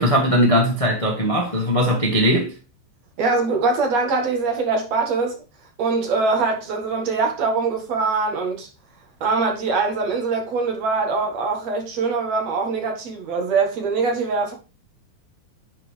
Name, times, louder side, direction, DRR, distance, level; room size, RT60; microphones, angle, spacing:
voice 1, 0.0-2.5, equal, 30° left, 0.6 m, -19 dB
voice 2, 3.2-5.4 5.8-8.7 9.2-14.5, right 4 dB, 60° right, 2.7 m, -23 dB
9.9 x 4.4 x 3.4 m
omnidirectional pair, 3.5 m